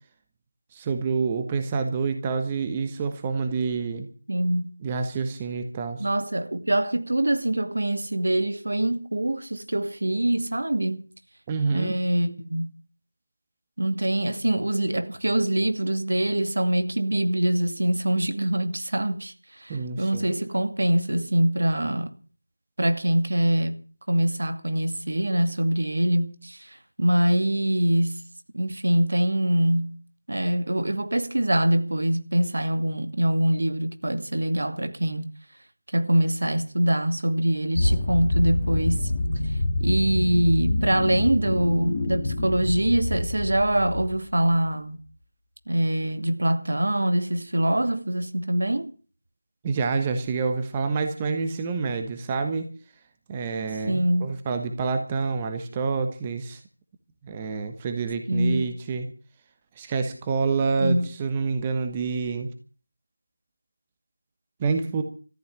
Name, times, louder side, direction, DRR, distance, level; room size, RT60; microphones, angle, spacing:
voice 1, 0.7-4.1 4.8-6.1 11.5-11.9 19.7-20.3 49.6-52.7 53.3-56.6 57.2-59.1 59.8-62.5 64.6-65.0, right 4 dB, 15° right, 1.2 m, -27 dB
voice 2, 4.3-4.7 6.0-11.0 11.7-12.8 13.8-22.1 22.8-28.2 28.5-30.0 30.3-35.3 35.9-39.1 39.8-45.0 45.7-48.9 53.9-54.3 58.3-58.7 60.8-61.1, right 1 dB, 70° right, 2.3 m, -24 dB
sound 1, 37.7-44.5, left 2 dB, 25° left, 2.2 m, -26 dB
14.5 x 11.0 x 8.8 m
figure-of-eight pair, 170°, 0 cm